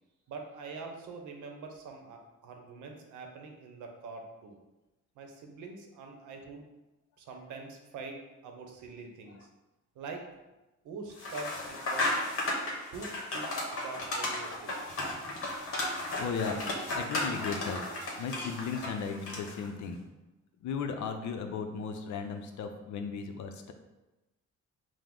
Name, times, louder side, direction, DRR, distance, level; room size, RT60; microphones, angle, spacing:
voice 1, 0.3-4.6 5.2-6.7 7.2-8.2 8.4-9.5 9.9-10.3 10.8-12.5 12.9-13.5 13.7-15.0, right 4 dB, 80° right, 3 dB, 0.7 m, -44 dB
sound 1, 11.2-19.6, left 2 dB, 45° left, 1.1 m, -34 dB
voice 2, 16.2-17.8 18.2-20.0 20.6-23.7, left 5 dB, 70° left, 6 dB, 0.6 m, -36 dB
4.8 x 2.1 x 3.6 m, 1.0 s
cardioid pair, 90°, 30 cm